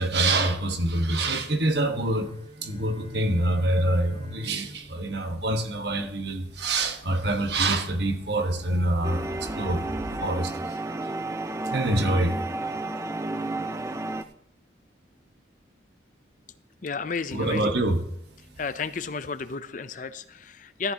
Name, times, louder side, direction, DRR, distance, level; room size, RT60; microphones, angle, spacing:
voice 1, 0.0-10.8 11.7-12.4 17.3-18.0, right 1 dB, 65° right, 1.3 m, -26 dB
sound 1, 1.8-6.3, right 1 dB, 45° right, 3.0 m, -48 dB
sound 2, 4.7-10.3, right 1 dB, 85° right, 0.9 m, -45 dB
sound 3, 9.0-14.2, right 2 dB, 15° right, 0.4 m, -32 dB
voice 2, 16.8-17.7 18.6-20.9, left 4 dB, 45° left, 0.5 m, -32 dB
14.0 x 12.5 x 2.9 m
head